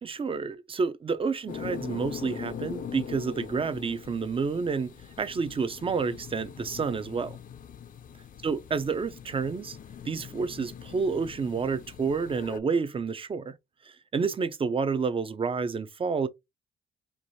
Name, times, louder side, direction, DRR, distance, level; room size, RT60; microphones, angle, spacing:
voice 1, 0.0-7.4 8.4-9.8 10.1-13.5 14.1-16.3, right 5 dB, 25° right, 0.5 m, -29 dB
sound 1, 1.5-12.6, left 8 dB, 45° left, 0.5 m, -42 dB
4.6 x 2.7 x 2.7 m
cardioid pair, 90°, 20 cm